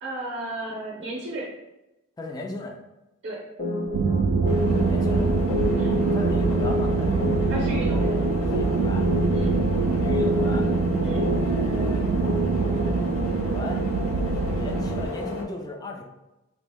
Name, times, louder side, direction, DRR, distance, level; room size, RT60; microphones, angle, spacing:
voice 1, 0.0-1.5 3.2-3.4 5.7-6.0 7.5-8.2 9.3-9.6 11.0-11.3, right 1 dB, 60° right, -3 dB, 0.6 m, -34 dB
voice 2, 2.2-2.8 4.7-5.3 6.0-7.6 8.3-9.0 9.6-10.7 11.3-12.1 12.6-13.8 14.2-16.0, left 2 dB, 20° left, 1 dB, 0.3 m, -37 dB
sound 1, 3.6-12.9, left 2 dB, 35° left, 0.7 m, -29 dB
sound 2, 3.9-15.1, right 4 dB, 85° right, 0.3 m, -24 dB
sound 3, 4.4-15.4, left 2 dB, 80° left, 0.5 m, -33 dB
2.9 x 2.0 x 3.4 m, 0.98 s
head